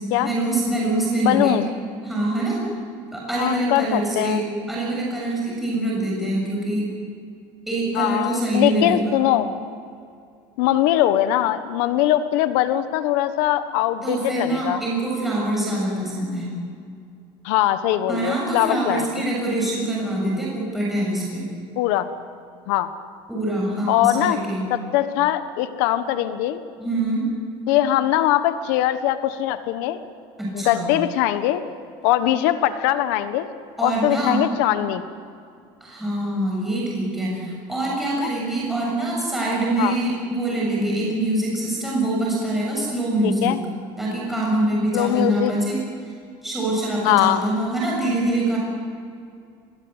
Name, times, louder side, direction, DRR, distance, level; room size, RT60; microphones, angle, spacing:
voice 1, 0.2-1.5 2.0-2.6 3.1-6.9 7.7-9.2 14.0-16.6 18.1-21.5 23.3-24.6 26.8-27.3 30.4-30.9 33.8-34.4 35.8-43.5 44.0-45.8 46.4-48.6, right 1 dB, ahead, -5 dB, 7.1 m, -24 dB
voice 2, 1.2-1.6 3.4-4.4 7.9-9.5 10.6-14.8 17.4-19.1 21.8-22.0 22.7-22.9 23.9-24.4 24.7-26.6 27.7-30.0 30.5-31.6 32.0-33.5 33.8-35.0 38.2-38.3 39.8-39.9 43.2-43.6 44.9-45.5 47.0-47.4, left 13 dB, 80° left, 11 dB, 1.4 m, -21 dB
25.5 x 22.0 x 8.1 m, 2.4 s
cardioid pair, 160°, 11 cm